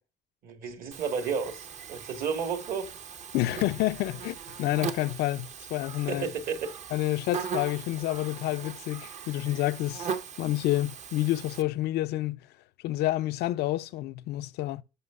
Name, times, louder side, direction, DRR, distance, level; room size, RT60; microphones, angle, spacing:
voice 1, 0.4-2.9 6.1-6.7, right 6 dB, 60° right, 1.4 m, -32 dB
Buzz, 0.9-11.6, right 7 dB, 45° right, 0.6 m, -39 dB
voice 2, 3.3-6.3 6.9-10.1 10.4-12.4 12.8-14.8, left 16 dB, 75° left, 0.4 m, -29 dB
11.0 x 5.6 x 2.4 m
cardioid pair, 110°, 17 cm